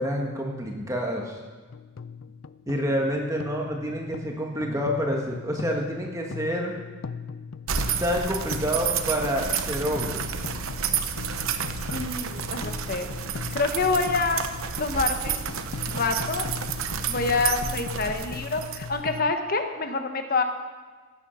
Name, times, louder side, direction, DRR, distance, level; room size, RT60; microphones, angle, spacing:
voice 1, 0.0-1.4 2.7-6.8 8.0-10.4, equal, 15° right, 0 dB, 1.4 m, -28 dB
sound 1, 1.7-19.3, left 5 dB, 70° left, 0.5 m, -39 dB
sound 2, 7.7-19.2, right 7 dB, 80° right, 0.9 m, -30 dB
voice 2, 11.9-13.1 13.5-14.4 14.8-15.5 15.9-16.5 17.1-20.4, left 3 dB, 45° left, 6 dB, 1.2 m, -27 dB
16.5 x 9.6 x 5.7 m, 1.4 s
head